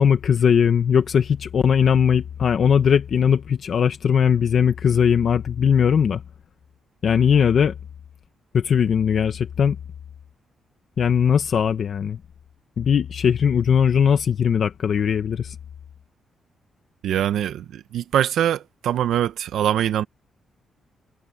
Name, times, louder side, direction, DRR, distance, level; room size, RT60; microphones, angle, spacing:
voice 1, 0.0-6.2 7.0-7.7 8.5-9.8 11.0-12.2 12.8-15.5, left 7 dB, 55° left, 1.1 m, -19 dB
voice 2, 17.0-20.0, right 10 dB, 80° right, 0.8 m, -23 dB
cardioid pair, 125°, 0 cm